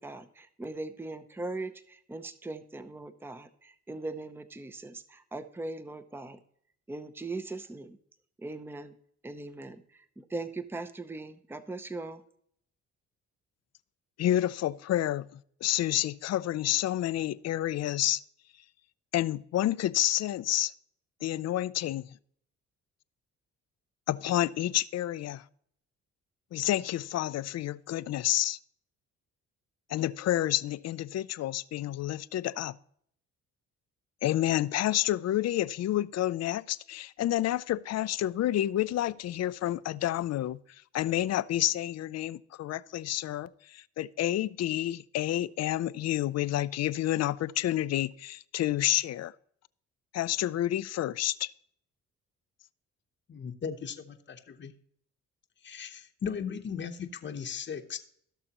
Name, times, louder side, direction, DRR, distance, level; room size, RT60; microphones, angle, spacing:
voice 1, 0.0-6.4 6.9-8.0 8.4-8.9 9.2-12.2, right 2 dB, 5° right, 0.7 m, -40 dB
voice 2, 14.2-18.2 19.1-20.7 21.2-22.1 24.1-25.4 26.5-28.6 29.9-32.8 34.2-40.6 40.9-49.3 50.1-51.5, left 13 dB, 60° left, 0.5 m, -29 dB
voice 3, 53.3-54.7 55.6-58.0, left 7 dB, 40° left, 0.9 m, -37 dB
16.0 x 6.5 x 2.9 m
cardioid pair, 90°, 30 cm